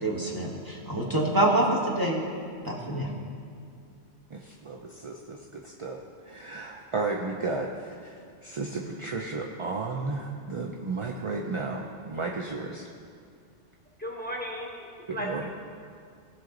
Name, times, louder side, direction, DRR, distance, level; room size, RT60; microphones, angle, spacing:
voice 1, 0.0-2.2 2.6-3.1, right 1 dB, 20° right, -2 dB, 1.3 m, -26 dB
voice 2, 4.3-12.9 15.1-15.5, right 3 dB, 40° right, 1 dB, 0.5 m, -34 dB
voice 3, 14.0-15.5, equal, 10° left, -2 dB, 1.2 m, -35 dB
17.0 x 5.9 x 3.9 m, 2.3 s
omnidirectional pair, 1.2 m